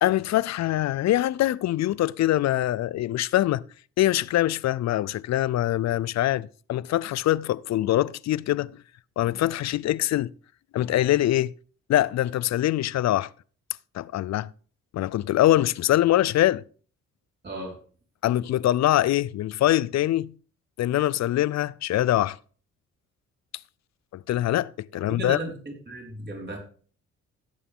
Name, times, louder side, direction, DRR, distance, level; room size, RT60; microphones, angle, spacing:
voice 1, 0.0-3.6 4.0-8.7 9.2-10.3 10.7-11.5 11.9-13.3 13.9-14.5 14.9-16.6 18.2-20.3 20.8-22.4 24.1-25.4, left 14 dB, 60° left, 0.5 m, -23 dB
voice 2, 17.4-17.8 25.1-25.5 25.9-26.6, right 2 dB, 35° right, 5.0 m, -34 dB
15.5 x 8.3 x 3.7 m
cardioid pair, 90°, 30 cm